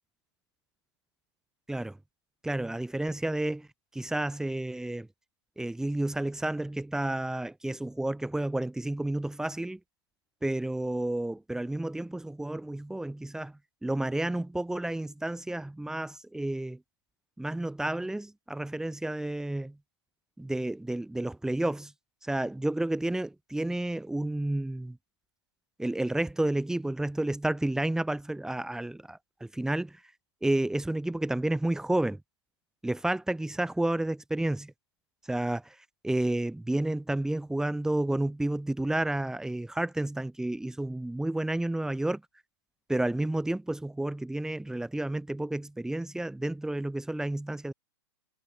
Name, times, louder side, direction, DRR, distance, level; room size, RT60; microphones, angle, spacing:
voice 1, 2.4-3.7 3.9-5.1 5.6-9.8 10.4-13.5 13.8-16.8 17.4-19.7 20.4-21.9 22.2-25.0 25.8-29.9 30.4-32.2 32.8-34.7 35.3-35.8 36.0-42.2 42.9-47.7, right 1 dB, 5° right, 5.4 m, -31 dB
hypercardioid pair, 120°, 14 cm